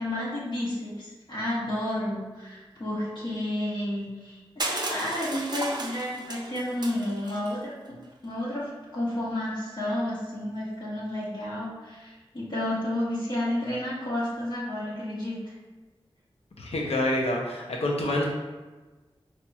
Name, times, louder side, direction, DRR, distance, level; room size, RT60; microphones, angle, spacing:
voice 1, 0.0-15.6, left 1 dB, 50° left, -8 dB, 1.1 m, -31 dB
Crushing, 4.6-7.5, right 2 dB, 45° right, 0.5 m, -34 dB
voice 2, 16.6-18.2, left 1 dB, 80° left, -1 dB, 0.7 m, -27 dB
4.1 x 2.9 x 2.3 m, 1.2 s
cardioid pair, 45°, 10 cm